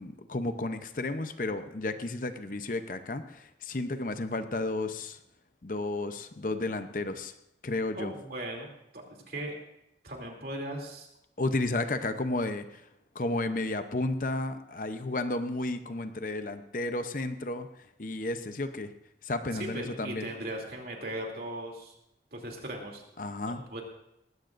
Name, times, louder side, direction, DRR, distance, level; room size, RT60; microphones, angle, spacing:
voice 1, 0.0-5.2 5.6-7.3 7.6-8.1 11.4-12.8 13.1-17.7 18.0-18.9 19.2-20.3 23.2-23.6, left 2 dB, 45° left, 9 dB, 0.7 m, -32 dB
voice 2, 7.9-9.5 10.0-11.1 19.5-21.9 22.3-23.0 23.4-23.8, right 1 dB, 55° right, 0 dB, 2.9 m, -38 dB
19.5 x 16.0 x 2.6 m, 0.81 s
head